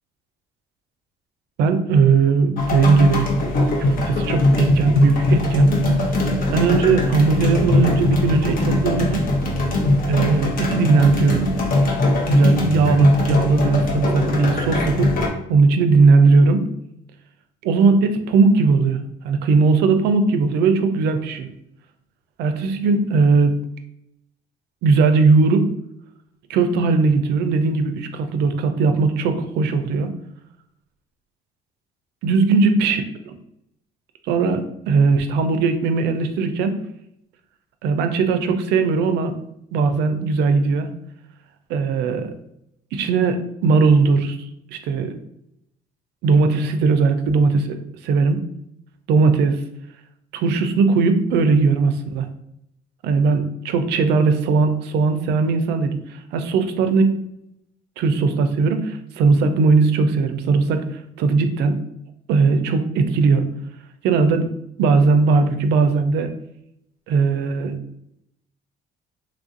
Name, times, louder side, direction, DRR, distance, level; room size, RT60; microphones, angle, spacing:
voice 1, 1.6-3.3 3.8-5.7 6.5-9.3 10.1-11.4 12.3-15.1 15.5-16.7 17.6-21.5 22.4-23.5 24.8-25.7 26.5-30.1 32.2-33.4 34.3-36.8 37.8-39.3 39.7-40.9 41.7-42.3 42.9-44.4 44.7-45.2 46.2-47.8 48.0-48.4 49.1-49.6 50.3-52.3 53.0-57.2 58.0-60.8 61.2-61.8 62.3-63.4 64.0-64.5 64.8-66.3 67.1-67.8, right 4 dB, 80° right, 8 dB, 0.4 m, -18 dB
sound 1, 2.6-15.3, left 2 dB, 60° left, 0.8 m, -20 dB
3.2 x 2.5 x 2.5 m, 0.78 s
cardioid pair, 110°, 17 cm